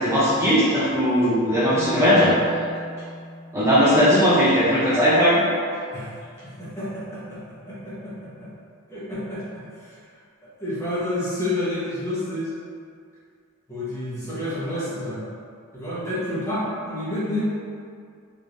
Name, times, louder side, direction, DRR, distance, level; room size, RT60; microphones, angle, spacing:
voice 1, 0.0-2.3 3.5-5.5, equal, 15° right, -11 dB, 0.5 m, -18 dB
Marimba xylophone, 1.7-4.7, equal, 80° right, 1.3 m, -38 dB
voice 2, 6.4-8.5 8.9-10.0 10.4-12.5 13.7-15.3 15.7-17.5, left 1 dB, 15° left, -10 dB, 1.1 m, -29 dB
3.5 x 3.2 x 2.6 m, 2.2 s
head